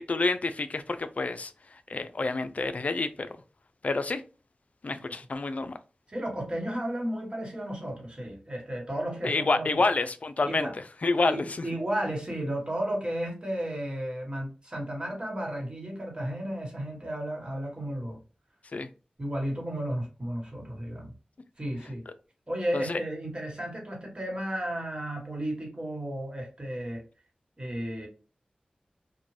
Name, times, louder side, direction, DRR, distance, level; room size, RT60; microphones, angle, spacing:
voice 1, 0.0-3.3 3.8-4.2 4.8-5.8 9.2-10.7 11.0-11.6 18.7-18.9 22.7-23.0, left 3 dB, 60° left, 0.3 m, -28 dB
voice 2, 6.1-9.8 10.4-10.7 11.3-18.2 19.2-21.1 21.6-22.0 22.5-27.0 27.6-28.1, right 1 dB, 35° right, 1.3 m, -33 dB
2.5 x 2.2 x 3.1 m
cardioid pair, 45°, 3 cm